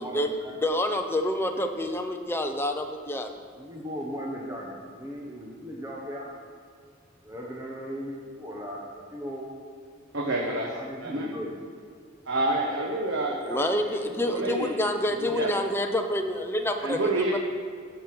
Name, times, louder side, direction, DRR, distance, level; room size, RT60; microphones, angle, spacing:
voice 1, 0.0-0.6 3.6-6.3 7.2-9.5 10.7-11.5, equal, 15° right, -4 dB, 1.1 m, -37 dB
voice 2, 0.6-3.4 13.4-17.0 17.3-17.4, left 1 dB, 10° left, 4 dB, 0.7 m, -27 dB
voice 3, 10.1-10.7 11.0-11.3 12.3-13.9 14.2-14.7 15.3-15.5 16.8-17.4, right 2 dB, 70° right, -1 dB, 1.1 m, -28 dB
13.5 x 5.5 x 6.1 m, 2.2 s
head